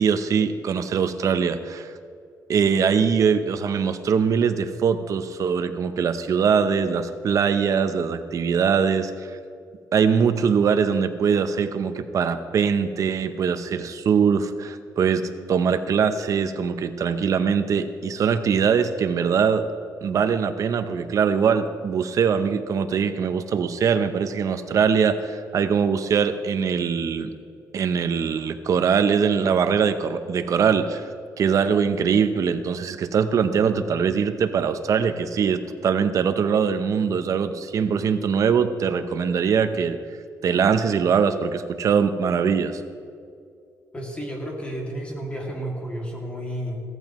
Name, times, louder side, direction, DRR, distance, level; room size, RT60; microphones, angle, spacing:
voice 1, 0.0-1.9 2.5-9.4 9.9-19.7 20.0-27.3 27.7-31.1 31.4-40.0 40.4-42.8, right 6 dB, 55° right, 9 dB, 0.8 m, -22 dB
voice 2, 43.9-46.8, right 1 dB, 15° left, -1 dB, 2.4 m, -31 dB
16.5 x 14.0 x 3.1 m, 2.4 s
cardioid pair, 145°, 7 cm